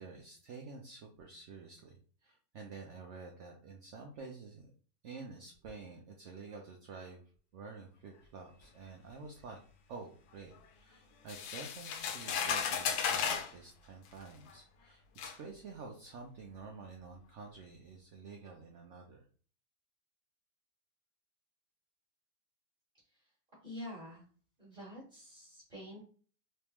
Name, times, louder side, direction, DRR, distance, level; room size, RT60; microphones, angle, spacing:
voice 1, 0.0-4.7 5.0-7.2 7.5-9.6 9.9-19.3, right 4 dB, 65° right, 2 dB, 0.8 m, -49 dB
sound 1, 11.3-13.5 14.5-14.6 15.2-15.4, left 7 dB, 90° left, 1.1 m, -34 dB
voice 2, 23.6-24.2 24.6-26.0, left 1 dB, 30° right, -6 dB, 1.6 m, -47 dB
3.4 x 3.2 x 3.0 m, 0.43 s
omnidirectional pair, 1.6 m